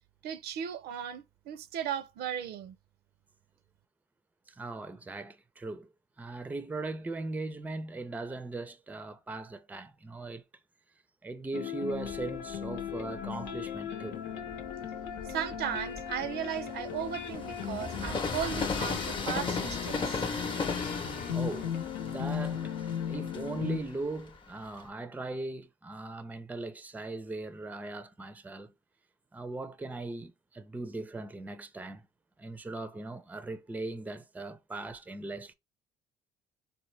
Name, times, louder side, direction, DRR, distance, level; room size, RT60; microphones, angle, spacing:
voice 1, 0.2-2.8 15.3-20.2, right 9 dB, 70° right, 0.5 m, -36 dB
voice 2, 4.5-5.9 6.2-10.4 11.2-14.2 21.3-21.7 22.0-28.7 29.3-32.1 32.4-35.5, right 2 dB, 10° right, 0.4 m, -39 dB
sound 1, 11.5-23.8, left 8 dB, 85° left, 0.8 m, -37 dB
Train, 12.0-13.7 14.3-24.9, left 4 dB, 30° left, 0.7 m, -37 dB
4.1 x 2.1 x 3.1 m
cardioid pair, 110°, 17 cm